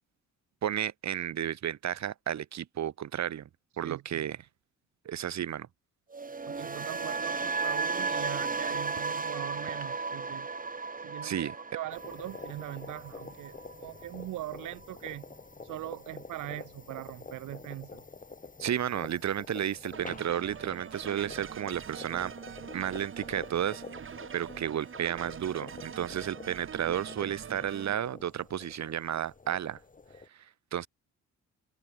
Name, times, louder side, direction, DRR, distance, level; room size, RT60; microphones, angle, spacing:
voice 1, 0.6-3.5 3.8-4.4 5.0-5.7 11.2-11.5 18.6-22.3 22.7-23.8 24.3-29.8 30.3-30.9, right 10 dB, 65° right, 4.3 m, -32 dB
voice 2, 3.7-4.3 6.5-10.5 11.0-15.3 15.6-18.0, right 15 dB, 85° right, 3.0 m, -41 dB
sound 1, 6.1-14.2 14.5-14.9, right 4 dB, 25° right, 4.8 m, -35 dB
sound 2, 11.9-30.3, left 4 dB, 25° left, 7.4 m, -48 dB
sound 3, 19.9-27.9, right 7 dB, 45° right, 2.6 m, -44 dB
cardioid pair, 90°, 30 cm